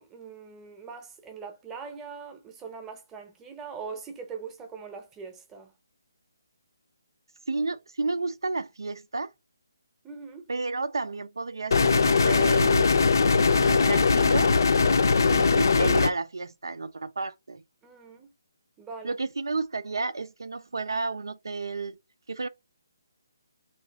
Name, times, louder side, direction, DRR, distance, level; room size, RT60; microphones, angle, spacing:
voice 1, 0.0-5.7 10.0-10.5 17.8-18.3 18.8-19.2, right 5 dB, 10° right, 0.7 m, -41 dB
voice 2, 7.5-9.3 10.5-13.0 13.4-14.5 15.3-17.6 19.0-22.0 22.3-22.5, right 3 dB, 90° right, 0.4 m, -31 dB
sound 1, 11.7-16.1, left 4 dB, 65° left, 0.5 m, -20 dB
3.1 x 2.9 x 4.0 m
hypercardioid pair, 160°, 2 cm